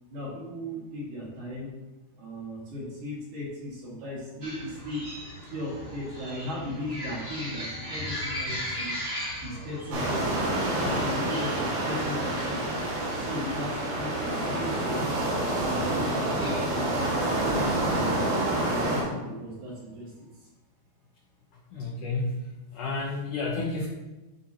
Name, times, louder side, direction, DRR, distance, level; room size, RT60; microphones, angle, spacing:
voice 1, 0.1-1.7 2.1-5.0 5.5-9.0 9.4-10.3 10.6-12.6 13.2-15.1 15.5-18.1 18.7-20.3, left 1 dB, 50° right, -6 dB, 3.4 m, -37 dB
sound 1, 4.4-18.6, equal, 35° right, 0.9 m, -40 dB
sound 2, 9.9-19.0, right 1 dB, 90° right, 4.6 m, -28 dB
voice 2, 21.7-22.4 22.7-23.9, left 3 dB, 75° left, -2 dB, 1.9 m, -30 dB
12.5 x 5.3 x 2.9 m, 1.1 s
omnidirectional pair, 4.9 m